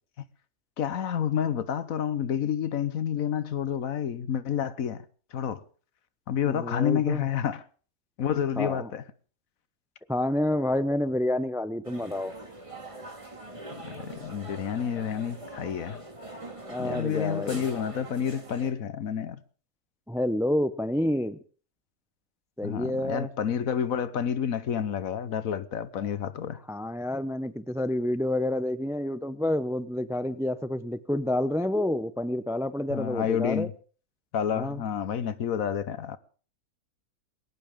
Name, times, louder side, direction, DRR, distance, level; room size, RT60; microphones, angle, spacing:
voice 1, 0.8-5.0 5.3-5.6 6.3-7.6 8.2-9.0 13.7-16.0 16.8-19.4 22.6-26.6 32.9-33.7 34.3-36.2, left 8 dB, 65° left, 1.3 m, -29 dB
voice 2, 6.5-7.2 8.6-8.9 10.1-12.3 16.7-17.6 20.1-21.4 22.6-23.3 26.7-33.7 34.5-34.8, left 1 dB, 5° right, 0.3 m, -28 dB
sound 1, 11.8-18.7, right 2 dB, 20° right, 2.1 m, -43 dB
21.0 x 17.5 x 3.7 m
omnidirectional pair, 1.6 m